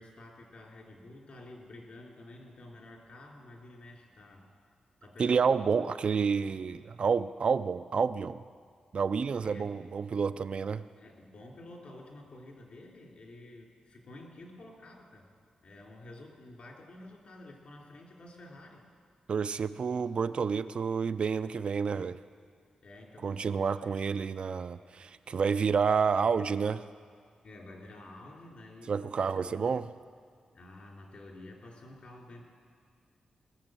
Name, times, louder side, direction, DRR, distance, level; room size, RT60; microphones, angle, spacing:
voice 1, 0.0-4.4 5.0-5.8 9.4-9.7 11.0-15.3 15.6-18.8 22.8-23.9 27.4-29.9 30.5-32.4, left 2 dB, 60° left, -1 dB, 3.1 m, -50 dB
voice 2, 5.2-8.4 8.9-10.9 19.3-22.2 23.2-26.8 28.9-29.9, right 5 dB, 55° right, 12 dB, 0.4 m, -29 dB
19.5 x 7.0 x 7.6 m, 2.2 s
wide cardioid pair, 110°, 2 cm